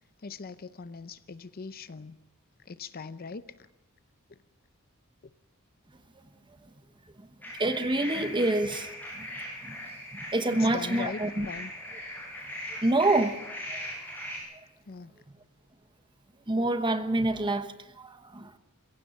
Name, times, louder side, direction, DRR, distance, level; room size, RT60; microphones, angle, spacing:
voice 1, 0.2-2.2 2.6-3.4 4.3-4.4 5.2-5.3 10.5-11.7 14.8-15.1, left 5 dB, 45° left, 0.6 m, -40 dB
sound 1, 7.4-14.4, equal, 10° left, 7.5 m, -39 dB
voice 2, 7.6-9.8 10.1-11.5 12.8-13.4 13.7-13.9 16.5-18.6, right 2 dB, 20° right, 1.1 m, -27 dB
23.0 x 16.5 x 7.1 m
head